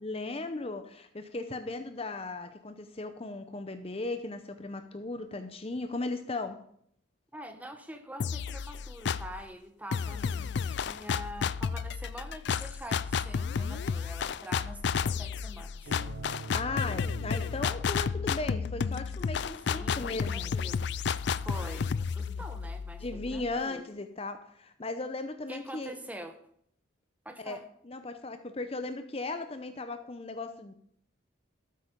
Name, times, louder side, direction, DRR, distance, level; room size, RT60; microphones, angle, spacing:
voice 1, 0.0-6.6 16.5-20.6 22.3-22.4 23.0-25.9 27.4-30.7, left 3 dB, 30° left, 9 dB, 0.7 m, -37 dB
voice 2, 7.3-15.9 19.7-20.8 21.4-23.8 25.5-26.4 27.2-27.6, equal, 10° right, 7 dB, 1.0 m, -45 dB
sound 1, 8.2-9.4 9.9-23.6, left 6 dB, 55° left, 0.3 m, -32 dB
sound 2, 15.9-19.5, right 3 dB, 60° right, 0.7 m, -45 dB
13.0 x 8.5 x 5.2 m, 0.67 s
head